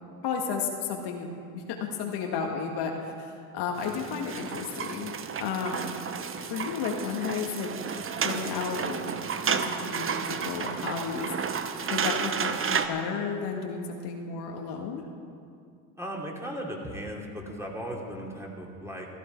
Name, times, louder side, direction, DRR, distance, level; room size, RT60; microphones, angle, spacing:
voice 1, 0.2-6.0 6.5-7.7 8.2-9.1 9.4-11.3 11.9-15.1, left 6 dB, 55° left, 1 dB, 1.9 m, -33 dB
sound 1, 3.8-12.9, right 6 dB, 25° right, 1.0 m, -32 dB
voice 2, 16.0-19.1, equal, 5° right, -2 dB, 2.9 m, -37 dB
15.5 x 13.5 x 4.7 m, 2.4 s
hypercardioid pair, 85°, 48 cm